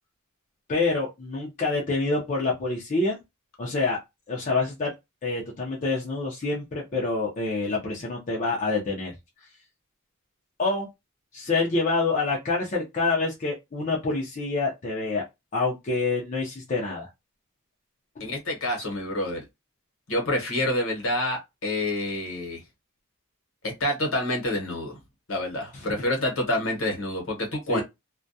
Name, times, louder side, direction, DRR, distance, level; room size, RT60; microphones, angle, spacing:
voice 1, 0.7-3.2 3.6-4.0 4.3-4.9 5.2-9.1 10.6-10.9 11.3-15.2 15.5-17.1 25.7-25.8 27.7-27.8, left 3 dB, 35° left, 0.5 m, -27 dB
voice 2, 18.2-19.4 20.1-22.6 23.6-25.0 25.3-27.8, left 1 dB, 65° left, 1.0 m, -27 dB
2.2 x 2.2 x 2.6 m
head